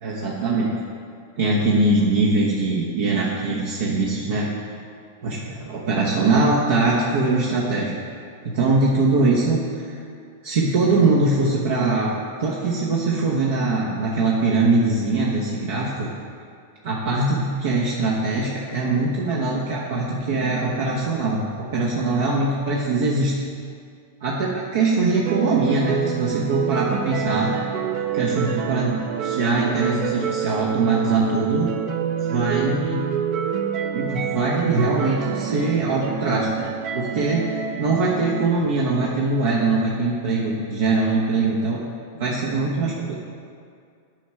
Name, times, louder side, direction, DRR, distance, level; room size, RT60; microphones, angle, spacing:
voice 1, 0.0-0.7 1.4-4.5 5.2-8.0 8.4-9.6 9.9-10.0 10.4-12.1 12.4-16.1 16.8-23.3 24.2-27.5 28.1-28.9 29.2-31.7 32.3-33.0 33.9-36.7 36.9-41.8 42.2-43.2, right 3 dB, 70° right, -4 dB, 1.0 m, -22 dB
sound 1, 25.2-38.5, right 8 dB, 45° right, 0.6 m, -27 dB
9.1 x 4.9 x 4.4 m, 2.3 s
hypercardioid pair, 110°, 0 cm